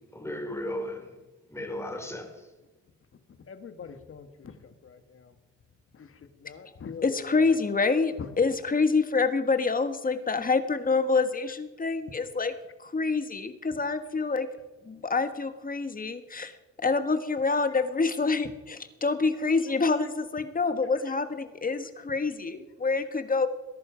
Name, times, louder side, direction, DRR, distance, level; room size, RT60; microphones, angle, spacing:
voice 1, 0.1-1.2 1.5-2.5, left 1 dB, 10° left, 4.3 m, -35 dB
voice 2, 3.5-5.3 5.9-7.6 8.2-8.3, left 6 dB, 45° left, 1.7 m, -43 dB
voice 3, 7.0-12.5 12.8-14.5 14.8-23.5, left 4 dB, 30° left, 1.5 m, -27 dB
20.0 x 11.0 x 5.1 m
cardioid pair, 90°, 30 cm